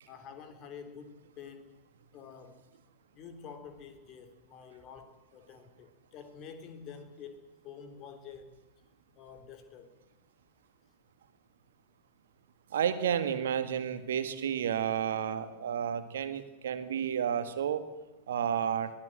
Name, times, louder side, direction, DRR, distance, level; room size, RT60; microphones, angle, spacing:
voice 1, 0.1-1.8 2.1-2.7 3.1-8.5 9.1-9.9, left 6 dB, 35° left, 8 dB, 3.2 m, -48 dB
voice 2, 12.7-17.8 18.3-18.9, right 8 dB, 60° right, 11 dB, 1.7 m, -31 dB
22.0 x 15.5 x 7.7 m, 1.0 s
figure-of-eight pair, 90°, 0 cm